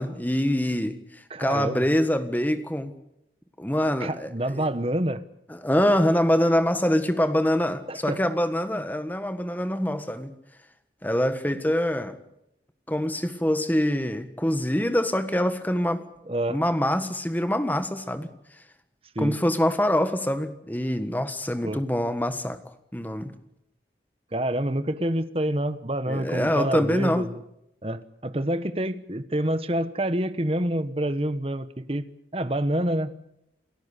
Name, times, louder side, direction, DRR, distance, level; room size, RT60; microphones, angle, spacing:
voice 1, 0.0-2.9 3.6-4.6 5.5-10.3 11.0-12.2 12.9-16.1 16.5-18.3 19.2-22.6 22.9-23.3 26.1-27.3, equal, 10° left, 9 dB, 1.5 m, -25 dB
voice 2, 1.3-1.9 4.0-5.2 7.9-8.2 16.3-16.6 19.1-19.4 21.6-21.8 24.3-27.4 27.8-32.0 32.3-33.1, right 1 dB, 30° right, 12 dB, 1.2 m, -27 dB
28.5 x 14.5 x 8.3 m, 0.82 s
head